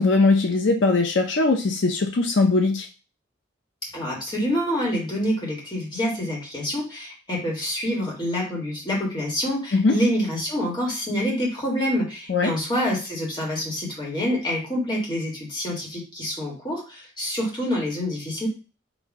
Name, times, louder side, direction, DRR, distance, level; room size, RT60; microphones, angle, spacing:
voice 1, 0.0-2.9 9.7-10.0 12.3-12.5, left 3 dB, 75° left, 3 dB, 0.6 m, -20 dB
voice 2, 3.9-18.5, equal, 25° left, -4 dB, 1.6 m, -27 dB
4.1 x 2.7 x 4.7 m, 0.33 s
head